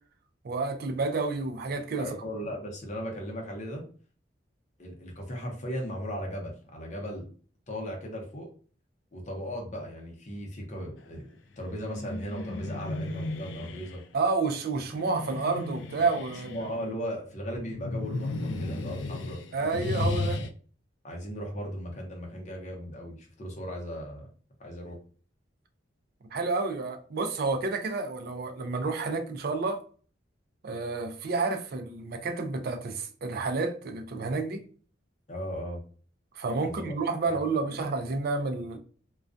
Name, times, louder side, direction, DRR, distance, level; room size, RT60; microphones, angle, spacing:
voice 1, 0.4-2.1 14.1-16.6 19.5-20.4 26.3-29.8 30.6-34.6 36.4-38.8, right 3 dB, 55° right, 0.4 m, -30 dB
voice 2, 2.0-3.8 4.8-7.3 7.7-8.5 9.1-11.3 11.6-14.0 16.5-19.4 21.0-24.3 24.6-25.0 35.3-35.8 36.6-36.9 37.3-37.4 37.7-37.8, equal, 40° left, 0.7 m, -37 dB
sound 1, 11.6-14.0 14.9-16.8 17.6-20.5, left 2 dB, 75° left, 0.3 m, -34 dB
2.3 x 2.2 x 2.5 m
head